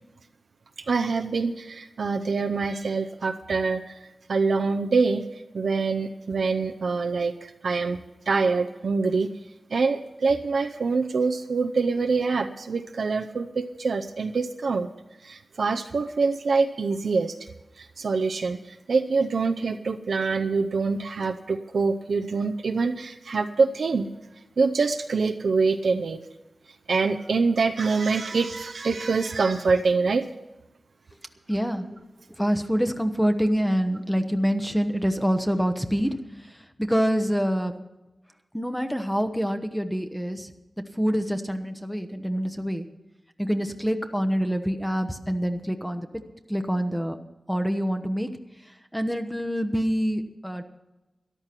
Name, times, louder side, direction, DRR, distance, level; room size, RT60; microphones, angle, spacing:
voice 1, 0.9-5.2 5.5-8.0 8.3-9.3 9.7-14.9 15.2-17.3 17.8-24.1 24.6-26.2 26.9-30.3, right 4 dB, 80° right, 4 dB, 0.7 m, -25 dB
voice 2, 31.5-32.0 32.4-36.2 36.4-37.7 38.5-40.5 40.9-42.9 43.4-46.1 46.5-47.2 47.5-48.3 48.9-50.6, equal, ahead, 7 dB, 0.9 m, -26 dB
13.5 x 11.5 x 5.9 m, 1.0 s
wide cardioid pair, 100°, 0 cm